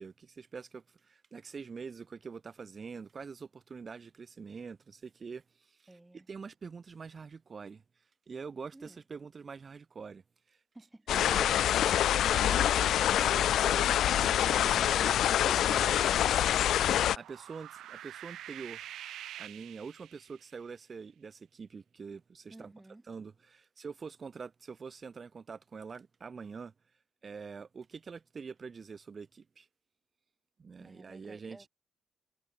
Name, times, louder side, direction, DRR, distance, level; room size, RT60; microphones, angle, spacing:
voice 1, 0.0-5.9 6.1-7.8 8.3-10.2 10.5-10.6 11.1-11.8 12.2-16.0 17.2-18.9 19.4-22.7 23.1-26.7 27.2-29.7 30.6-31.7, right 5 dB, 30° right, 1.8 m, -45 dB
voice 2, 5.9-6.3 8.7-9.0 10.7-11.1 22.5-23.1 30.8-31.7, right 2 dB, 10° right, 4.3 m, -54 dB
sound 1, 11.1-17.2, left 11 dB, 70° left, 0.6 m, -26 dB
sound 2, 16.8-20.5, right 12 dB, 90° right, 5.4 m, -47 dB
cardioid pair, 175°, 0 cm